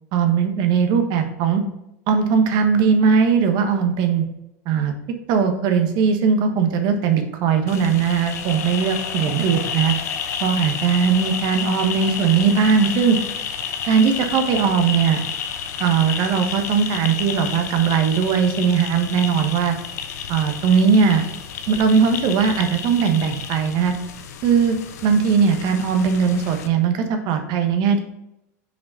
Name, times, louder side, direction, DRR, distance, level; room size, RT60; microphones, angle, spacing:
voice 1, 0.1-1.6 2.1-4.2 4.6-4.9 5.3-9.9 10.4-13.2 13.9-15.2 15.8-19.8 20.3-21.2 21.7-23.9 24.4-24.8 25.0-28.0, right 6 dB, 55° right, 6 dB, 1.3 m, -19 dB
sound 1, 7.7-26.7, left 7 dB, 80° left, 0.8 m, -30 dB
6.2 x 4.9 x 4.1 m, 0.85 s
hypercardioid pair, 95°, 9 cm